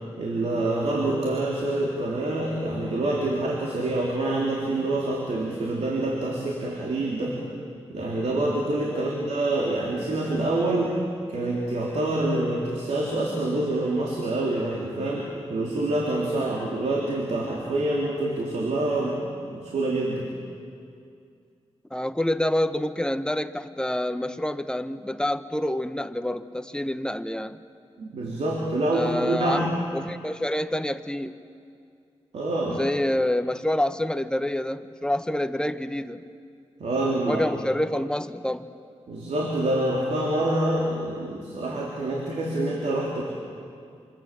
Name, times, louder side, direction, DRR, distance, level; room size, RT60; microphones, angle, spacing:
voice 1, 0.2-7.4 7.9-11.0 11.3-19.2 19.5-20.3 28.0-29.7 32.3-32.8 36.8-37.5 39.1-43.2, right 2 dB, 85° right, -2 dB, 3.5 m, -26 dB
voice 2, 21.9-27.6 28.9-31.4 32.7-36.2 37.3-38.7, left 1 dB, 5° left, 10 dB, 1.1 m, -27 dB
26.5 x 26.0 x 7.6 m, 2.3 s
cardioid pair, 70°, 11 cm